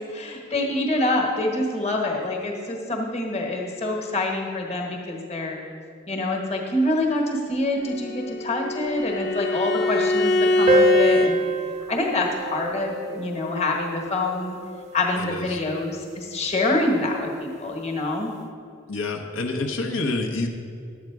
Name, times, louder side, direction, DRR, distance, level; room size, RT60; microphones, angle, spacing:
voice 1, 0.0-5.6 6.1-11.4 11.9-14.6 14.9-18.3, left 2 dB, 30° left, 1 dB, 1.2 m, -26 dB
Bowed string instrument, 7.8-11.3, left 1 dB, 55° left, 0.9 m, -23 dB
sound 1, 10.7-15.6, left 1 dB, 35° right, 0.4 m, -27 dB
voice 2, 15.2-15.6 18.9-20.5, left 2 dB, 85° left, 2 dB, 0.9 m, -28 dB
11.0 x 8.0 x 4.7 m, 2.3 s
head